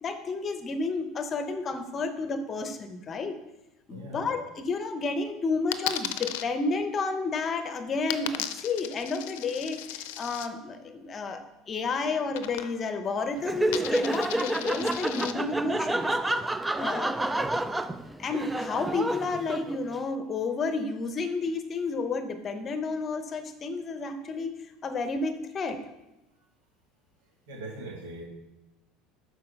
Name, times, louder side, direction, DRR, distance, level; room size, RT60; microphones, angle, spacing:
voice 1, 0.0-3.4 3.9-16.2 16.8-17.2 18.2-25.8, left 3 dB, 30° left, 8 dB, 0.8 m, -31 dB
voice 2, 3.9-4.3 27.5-28.2, right 1 dB, 85° right, -1 dB, 2.4 m, -40 dB
Coin (dropping), 5.7-6.4 8.1-10.5 12.3-13.0 13.3-15.3, left 12 dB, 85° left, 0.5 m, -36 dB
Laughter, 13.4-20.0, right 1 dB, 10° right, 0.3 m, -29 dB
7.5 x 4.7 x 5.8 m, 0.96 s
supercardioid pair, 120°, 0 cm